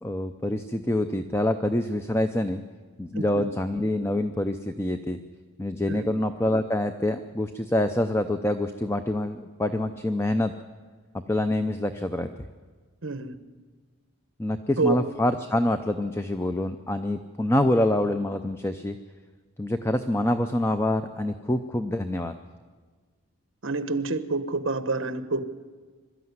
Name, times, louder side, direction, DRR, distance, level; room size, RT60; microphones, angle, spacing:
voice 1, 0.0-2.6 3.0-5.2 5.6-10.5 11.3-12.3 14.4-19.0 19.6-22.3, left 1 dB, 10° left, 9 dB, 0.5 m, -26 dB
voice 2, 3.1-3.5 5.9-6.1 13.0-13.4 14.8-14.9 23.6-25.5, right 3 dB, 60° right, 11 dB, 1.1 m, -28 dB
22.5 x 13.0 x 9.5 m, 1.5 s
head